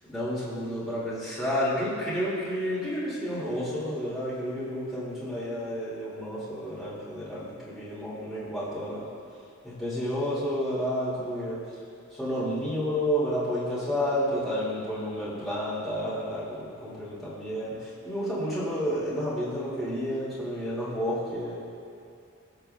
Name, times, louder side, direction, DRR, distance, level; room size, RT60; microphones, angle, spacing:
voice 1, 0.1-9.1 9.6-11.6 12.1-21.5, equal, ahead, -11 dB, 2.0 m, -30 dB
18.0 x 7.0 x 2.2 m, 2.5 s
head